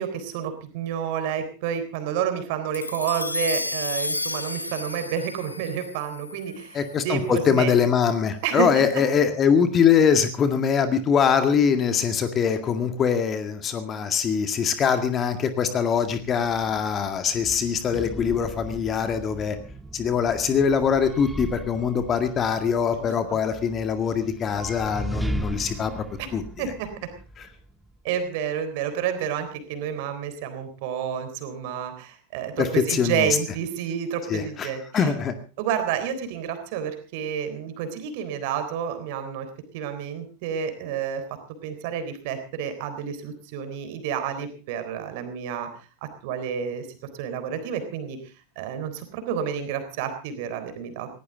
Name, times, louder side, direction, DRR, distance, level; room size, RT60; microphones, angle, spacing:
voice 1, 0.0-7.7 8.4-9.0 22.9-23.4 26.2-26.3 26.6-26.9 28.0-35.1 35.6-39.5 39.7-41.2 41.6-45.7 46.0-46.9 47.1-51.1, right 8 dB, 50° right, 9 dB, 3.7 m, -30 dB
sound 1, 2.7-7.3, left 2 dB, 80° left, 0.9 m, -32 dB
voice 2, 6.7-19.6 19.9-26.0 26.3-26.4 32.6-33.3 34.3-35.3, left 7 dB, 25° left, 8 dB, 2.0 m, -23 dB
sound 2, 15.9-28.0, right 1 dB, 5° right, 1.3 m, -38 dB
19.5 x 17.0 x 3.9 m, 0.35 s
figure-of-eight pair, 90°, 0 cm